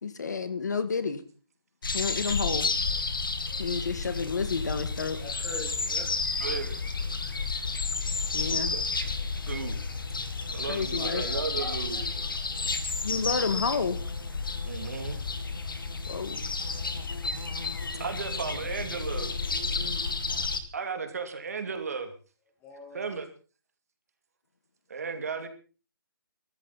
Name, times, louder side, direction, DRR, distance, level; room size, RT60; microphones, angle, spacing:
voice 1, 0.0-1.2 1.9-2.7 3.6-5.2 8.3-8.8 10.7-11.3 13.0-14.0 16.1-16.4, left 5 dB, 50° left, 11 dB, 1.9 m, -30 dB
sound 1, 1.8-20.6, left 4 dB, 70° left, 2.8 m, -31 dB
voice 2, 5.1-6.1 11.0-12.3 22.6-23.1, left 2 dB, 10° left, 1 dB, 1.4 m, -42 dB
voice 3, 6.4-6.8 8.6-8.8 9.5-9.8 10.5-12.0 14.7-15.2 18.0-19.3 20.7-22.1 22.9-23.3 24.9-25.5, right 5 dB, 40° right, 7 dB, 2.7 m, -34 dB
22.5 x 13.5 x 4.2 m, 0.37 s
hypercardioid pair, 175°, 12 cm